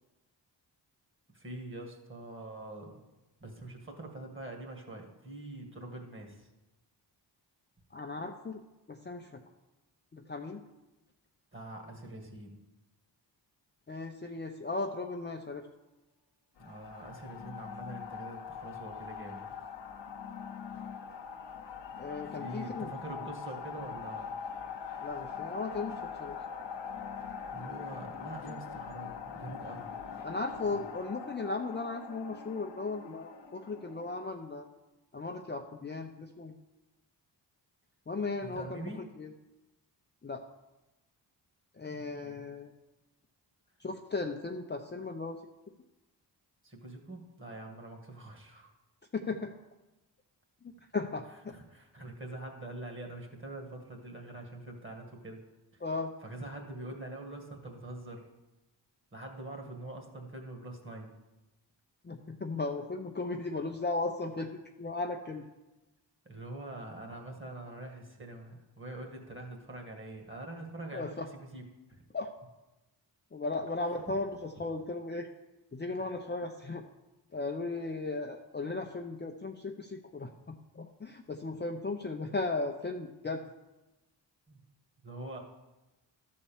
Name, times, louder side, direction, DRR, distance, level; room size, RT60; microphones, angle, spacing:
voice 1, 1.3-3.0 3.4-6.5 11.5-12.6 16.6-19.5 22.3-24.3 27.5-29.9 30.7-30.8 38.4-39.0 41.9-42.5 46.6-48.7 51.5-55.4 55.7-55.8 56.2-58.2 59.1-61.1 63.5-63.6 66.3-71.6 71.9-72.0 74.1-74.2 84.5-84.6 85.0-85.4, right 2 dB, 25° right, 2 dB, 2.1 m, -44 dB
voice 2, 7.9-8.6 8.9-9.4 10.1-10.6 13.9-15.7 22.0-22.9 23.2-23.3 25.0-26.4 30.2-34.7 35.1-36.5 38.1-38.9 39.2-39.3 40.2-40.5 41.8-42.7 43.8-45.4 49.1-49.5 50.9-51.3 55.8-56.1 62.0-64.5 64.8-65.4 70.9-71.3 72.1-72.3 73.3-75.3 75.7-76.8 77.3-83.4, left 3 dB, 25° left, 3 dB, 0.6 m, -36 dB
sound 1, 16.6-34.3, left 6 dB, 70° left, 1.0 m, -43 dB
12.5 x 4.2 x 7.1 m, 1.0 s
wide cardioid pair, 100°, 44 cm